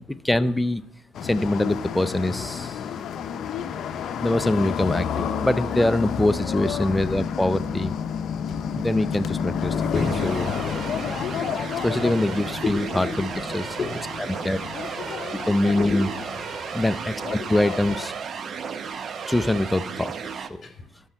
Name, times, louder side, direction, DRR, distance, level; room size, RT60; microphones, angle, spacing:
voice 1, 0.1-0.8 1.2-2.7 4.2-8.0 8.7-10.4 11.8-13.7 14.4-14.6 14.9-15.0 15.3-16.1 16.7-18.1 19.3-20.7, left 1 dB, 10° left, 0.5 m, -24 dB
sound 1, 1.1-18.1, left 7 dB, 60° left, 0.6 m, -30 dB
voice 2, 5.6-6.0 9.9-10.4 11.2-12.4 12.6-13.3 13.6-14.0 15.7-16.3 20.6-20.8, left 4 dB, 40° left, 2.3 m, -32 dB
sound 2, 9.9-20.5, right 6 dB, 50° right, 0.7 m, -34 dB
13.0 x 5.4 x 5.6 m
supercardioid pair, 75°, 0 cm